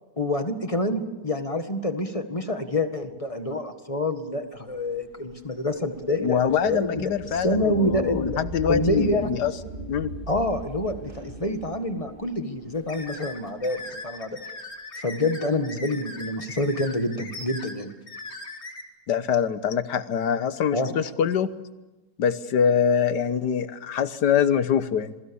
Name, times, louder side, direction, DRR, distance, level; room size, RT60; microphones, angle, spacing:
voice 1, 0.2-7.1 7.4-8.4 8.7-9.3 10.3-14.4 15.0-17.9 20.7-20.9, left 1 dB, 20° left, 7 dB, 1.7 m, -27 dB
sound 1, 4.8-13.8, right 2 dB, 30° right, 2.2 m, -39 dB
voice 2, 6.2-9.5 9.9-10.1 19.1-21.5 22.2-25.1, left 8 dB, 85° left, 13 dB, 1.7 m, -24 dB
sound 2, 12.9-18.8, left 2 dB, 55° left, 3.7 m, -39 dB
27.0 x 23.0 x 7.1 m, 1.1 s
omnidirectional pair, 1.8 m